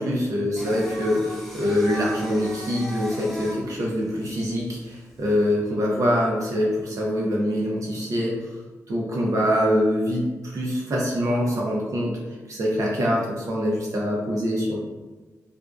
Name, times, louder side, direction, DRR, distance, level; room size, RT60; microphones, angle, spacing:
voice 1, 0.0-8.4 8.9-12.2 12.5-14.8, equal, 65° right, -3 dB, 0.6 m, -24 dB
Singing, 0.6-5.5, left 1 dB, ahead, 0.4 m, -37 dB
2.6 x 2.2 x 2.2 m, 1.2 s
wide cardioid pair, 130°, 6 cm